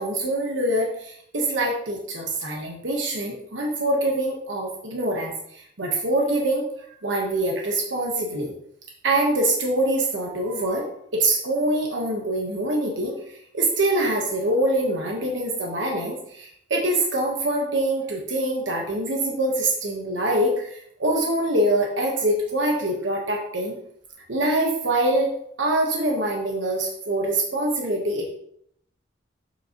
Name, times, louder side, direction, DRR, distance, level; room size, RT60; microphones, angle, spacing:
voice 1, 0.0-8.5 9.0-23.8 24.3-25.3 25.6-28.3, right 1 dB, 80° right, 0 dB, 1.1 m, -24 dB
7.0 x 6.0 x 2.9 m, 0.72 s
head